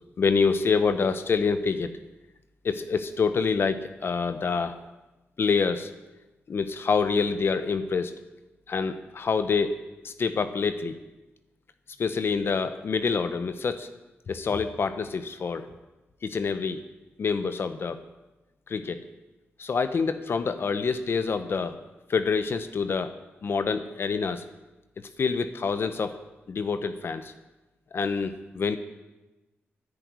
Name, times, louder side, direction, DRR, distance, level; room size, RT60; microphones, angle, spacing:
voice 1, 0.2-1.9 2.6-4.8 5.4-5.9 6.5-8.1 8.7-10.9 12.0-13.9 14.3-15.7 16.2-16.8 17.2-18.0 18.7-19.0 19.6-21.8 22.1-23.1 23.4-24.4 25.0-26.2 26.5-27.3 27.9-28.8, left 5 dB, 55° left, 10 dB, 0.9 m, -26 dB
11.0 x 10.5 x 9.5 m, 1.1 s
wide cardioid pair, 110°, 5 cm